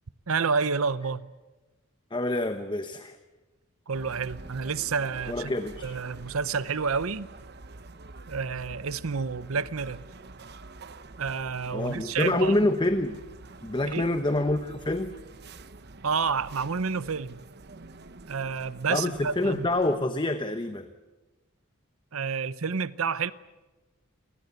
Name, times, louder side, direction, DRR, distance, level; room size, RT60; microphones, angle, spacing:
voice 1, 0.3-1.3 3.9-5.5 5.8-7.3 8.3-10.0 11.2-12.6 13.9-14.1 16.0-17.4 18.3-19.7 22.1-23.3, right 5 dB, 75° right, 0.8 m, -29 dB
voice 2, 2.1-3.2 5.3-6.0 11.7-13.2 13.6-15.1 18.9-20.9, left 2 dB, 20° left, 1.0 m, -27 dB
sound 1, 3.9-20.0, right 3 dB, 50° right, 1.0 m, -47 dB
28.0 x 19.5 x 8.2 m
head